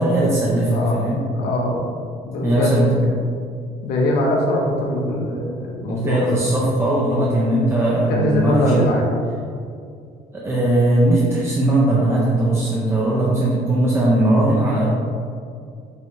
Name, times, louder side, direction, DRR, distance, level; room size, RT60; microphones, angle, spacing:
voice 1, 0.0-1.2 2.4-2.9 5.9-8.9 10.3-14.9, right 1 dB, 15° right, -6 dB, 0.6 m, -19 dB
voice 2, 0.7-1.0 1.3-1.9 2.3-3.1 3.8-6.2 7.1-7.3 8.1-9.1, left 1 dB, 75° left, -2 dB, 0.8 m, -22 dB
5.5 x 2.7 x 3.1 m, 2.3 s
cardioid pair, 110°, 17 cm